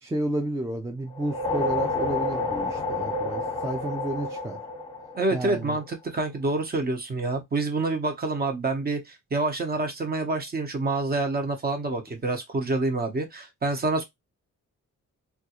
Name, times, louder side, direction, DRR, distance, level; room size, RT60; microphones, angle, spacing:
voice 1, 0.0-4.6 5.3-5.8, right 1 dB, 10° right, 0.4 m, -31 dB
sound 1, 1.1-5.7, left 2 dB, 20° left, 0.8 m, -29 dB
voice 2, 5.1-14.0, right 2 dB, 30° right, 0.8 m, -27 dB
3.5 x 2.4 x 2.9 m
wide cardioid pair, 160°, 30 cm